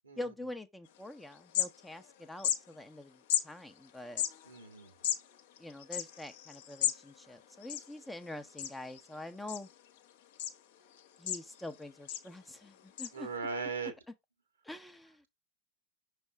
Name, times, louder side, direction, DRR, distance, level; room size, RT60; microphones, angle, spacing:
voice 1, 0.2-4.2 5.6-9.7 11.2-13.3 14.6-15.3, left 1 dB, 5° left, 0.7 m, -45 dB
sound 1, 1.0-1.1 1.3-2.1 2.4-2.6 3.3-3.4 4.0-7.0 7.3-7.4 7.6-8.2 8.6-9.0 9.5-10.0 10.4-10.5 11.0-11.7 12.1-12.3 13.0-13.1, left 11 dB, 55° left, 0.9 m, -34 dB
voice 2, 4.4-4.9 13.1-13.9, right 4 dB, 75° right, 1.7 m, -38 dB
6.3 x 3.2 x 4.7 m
figure-of-eight pair, 90°, 0 cm